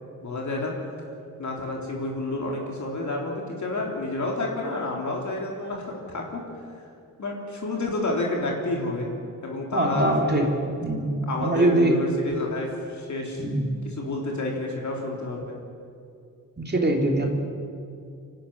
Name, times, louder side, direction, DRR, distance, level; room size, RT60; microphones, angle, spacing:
voice 1, 0.2-0.7 1.4-6.4 7.2-9.1 9.4-10.5 11.3-13.4 13.8-15.6, left 2 dB, 55° left, -1 dB, 3.8 m, -29 dB
voice 2, 9.7-10.5 10.8-12.0 13.4-13.8 16.6-17.3, right 1 dB, 30° right, 1 dB, 3.3 m, -23 dB
24.5 x 12.0 x 9.9 m, 2.4 s
cardioid pair, 75°, 34 cm